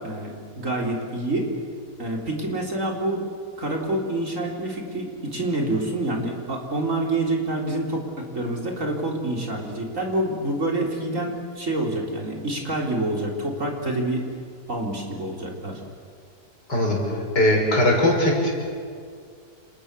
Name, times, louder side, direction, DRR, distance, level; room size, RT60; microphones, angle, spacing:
voice 1, 0.0-1.5 2.0-3.3 3.6-8.0 8.3-14.3 14.7-15.8, right 1 dB, 50° right, 0 dB, 4.3 m, -27 dB
voice 2, 17.4-18.5, left 1 dB, 80° left, -1 dB, 6.9 m, -19 dB
29.0 x 28.0 x 6.9 m, 2.2 s
omnidirectional pair, 1.8 m